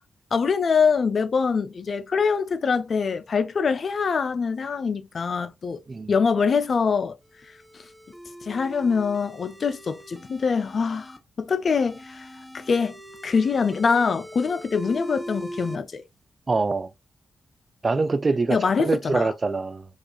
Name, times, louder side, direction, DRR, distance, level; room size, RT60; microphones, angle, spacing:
voice 1, 0.3-5.8 6.1-7.2 7.7-7.8 8.4-12.3 12.5-13.0 13.2-16.0 18.5-19.3, left 5 dB, 60° left, 0.4 m, -24 dB
sound 1, 7.2-11.2 11.7-15.8, equal, 5° left, 0.8 m, -41 dB
voice 2, 16.5-16.9 17.8-19.9, right 3 dB, 45° right, 0.4 m, -24 dB
4.8 x 2.5 x 2.3 m
supercardioid pair, 40°, 0 cm